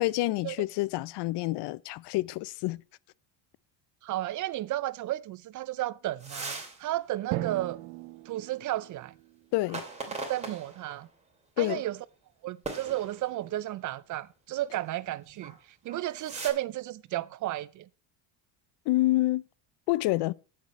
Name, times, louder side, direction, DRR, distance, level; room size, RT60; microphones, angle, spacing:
voice 1, 0.0-2.8 9.5-9.8 11.6-11.8 18.9-19.4 19.9-20.3, left 18 dB, 55° left, 0.5 m, -27 dB
voice 2, 4.0-7.8 8.3-9.1 10.2-11.1 11.6-12.0 12.4-15.5 15.8-17.9, right 14 dB, 40° right, 0.4 m, -33 dB
sound 1, 6.2-6.8 7.2-7.3 9.6-11.0 11.7-11.8 12.6-13.5 15.3-15.6 15.9-16.5, right 3 dB, 15° right, 2.7 m, -39 dB
Drum, 7.3-9.8, right 16 dB, 75° right, 1.0 m, -38 dB
18.0 x 6.7 x 3.0 m
cardioid pair, 125°, 50 cm